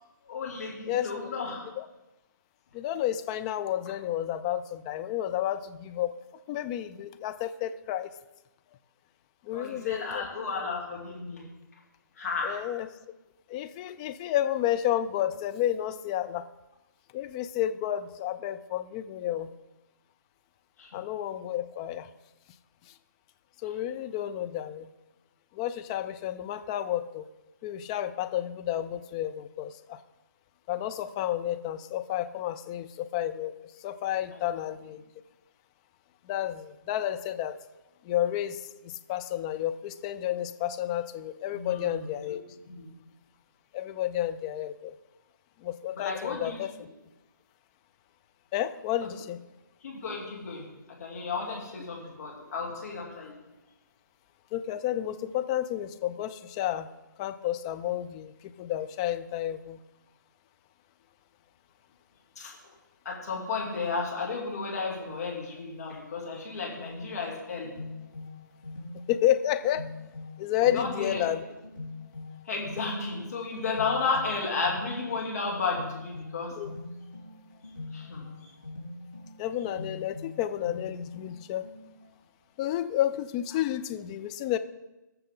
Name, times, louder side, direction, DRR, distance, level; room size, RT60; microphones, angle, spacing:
voice 1, 0.3-1.6 9.5-11.5 12.2-12.5 20.8-21.0 34.3-34.4 41.5-42.3 42.7-42.9 45.9-46.6 49.8-50.7 51.0-53.3 62.4-62.5 63.0-67.7 70.7-71.3 72.5-76.5 77.9-78.3, left 4 dB, 50° left, -2 dB, 2.6 m, -33 dB
voice 2, 0.9-1.3 1.8-1.9 2.7-6.1 6.5-8.1 9.4-10.3 12.4-12.9 13.5-16.5 17.1-19.5 20.9-22.1 23.6-24.9 25.5-27.3 27.6-30.0 30.7-33.5 33.8-35.0 36.2-37.6 38.0-42.4 43.7-44.9 45.6-46.9 48.5-49.4 54.5-56.9 57.2-59.8 69.1-69.8 70.4-71.4 76.6-76.7 79.4-81.7 82.6-84.6, left 12 dB, 20° left, 9 dB, 0.4 m, -31 dB
sound 1, 67.3-82.1, left 2 dB, 90° left, 4.4 m, -43 dB
19.0 x 6.8 x 3.8 m, 1.0 s
figure-of-eight pair, 140°, 11 cm